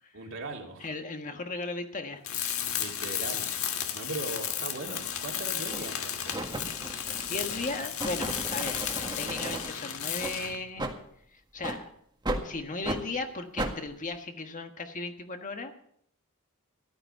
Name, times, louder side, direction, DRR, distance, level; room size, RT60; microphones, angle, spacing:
voice 1, 0.1-0.9 2.8-3.5 3.9-6.4, right 2 dB, 60° right, 1 dB, 2.8 m, -39 dB
voice 2, 0.8-2.2 7.3-10.9 11.3-11.9 12.4-15.7, left 3 dB, 35° left, 6 dB, 1.4 m, -36 dB
Tools, 2.2-10.6, left 9 dB, 70° left, 1.6 m, -34 dB
sound 1, 4.8-5.0 5.7-6.0 6.3-9.7 10.2-10.3 10.8-11.0 11.6-11.8 12.2-12.4 12.8-13.0 13.6-13.7, right 1 dB, 20° right, 1.7 m, -35 dB
14.5 x 12.0 x 5.6 m, 0.68 s
head